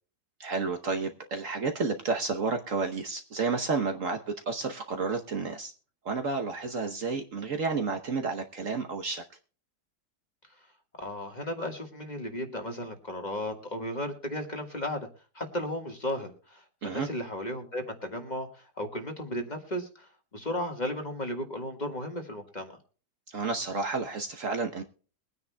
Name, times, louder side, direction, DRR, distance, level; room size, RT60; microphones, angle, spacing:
voice 1, 0.4-5.7 6.0-9.2 16.8-17.1 23.3-24.8, right 4 dB, 55° right, 5 dB, 1.2 m, -31 dB
voice 2, 11.0-15.1 15.3-20.1 20.3-22.7, left 1 dB, 25° left, 4 dB, 1.6 m, -35 dB
22.5 x 9.6 x 2.2 m, 0.38 s
omnidirectional pair, 1.8 m